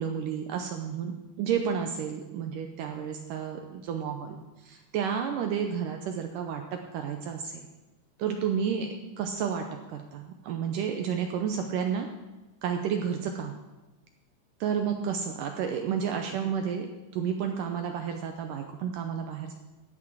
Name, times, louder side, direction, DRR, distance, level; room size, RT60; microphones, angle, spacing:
voice 1, 0.0-4.4 4.7-7.5 8.2-8.9 9.2-9.7 9.9-12.1 12.6-13.5 14.6-16.9 17.1-19.5, right 7 dB, 80° right, 4 dB, 2.0 m, -31 dB
15.0 x 6.1 x 6.1 m, 1.1 s
omnidirectional pair, 4.4 m